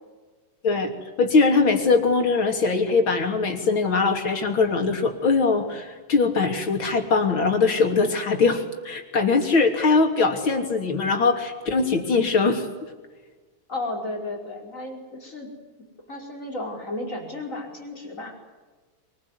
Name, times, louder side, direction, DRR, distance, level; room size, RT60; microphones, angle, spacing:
voice 1, 1.2-12.7, left 4 dB, 70° left, 4 dB, 3.9 m, -21 dB
voice 2, 13.7-15.5 16.1-18.3, left 2 dB, 35° left, 1 dB, 5.5 m, -33 dB
24.0 x 21.0 x 9.7 m, 1.3 s
omnidirectional pair, 2.3 m